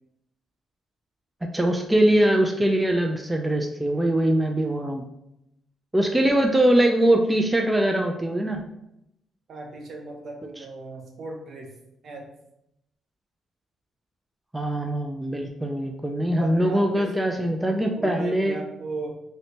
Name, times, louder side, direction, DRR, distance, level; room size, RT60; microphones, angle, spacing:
voice 1, 1.4-5.0 5.9-8.6 14.5-18.5, right 1 dB, 10° right, 3 dB, 0.3 m, -22 dB
voice 2, 9.5-11.8 12.0-12.3 16.4-17.1 18.0-19.1, right 2 dB, 55° right, 2 dB, 0.7 m, -37 dB
3.1 x 2.8 x 2.8 m, 0.82 s
cardioid pair, 90°, 0 cm